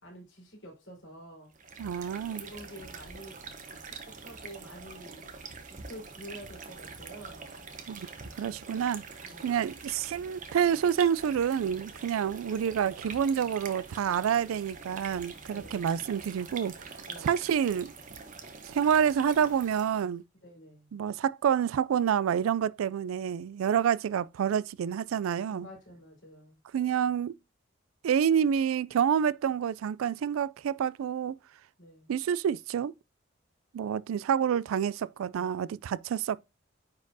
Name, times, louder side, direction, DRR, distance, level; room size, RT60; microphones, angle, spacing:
voice 1, 0.0-1.5 2.4-3.4 3.7-5.3 5.7-7.6 9.2-9.7 15.4-16.0 17.0-17.4 20.4-21.0 25.4-26.6 31.8-32.2, equal, 65° left, 4.2 m, -49 dB
sound 1, 1.5-20.1, right 5 dB, 40° right, 1.0 m, -45 dB
voice 2, 1.8-2.4 7.9-8.1 8.4-9.0 9.4-16.7 17.2-17.9 18.7-20.2 20.9-25.7 26.7-27.4 28.0-31.4 32.1-32.9 33.7-36.4, right 8 dB, 85° right, 0.3 m, -28 dB
9.5 x 4.3 x 2.7 m
head